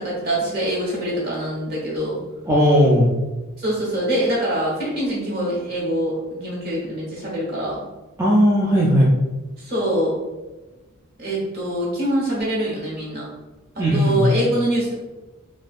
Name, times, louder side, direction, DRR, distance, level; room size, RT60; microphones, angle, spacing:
voice 1, 0.0-2.2 3.6-7.8 9.6-10.1 11.2-13.3 13.7-14.9, right 1 dB, 45° right, -5 dB, 1.2 m, -24 dB
voice 2, 2.5-3.1 8.2-9.1 13.8-14.3, equal, 15° right, -6 dB, 0.4 m, -16 dB
4.3 x 2.4 x 2.5 m, 1.1 s
head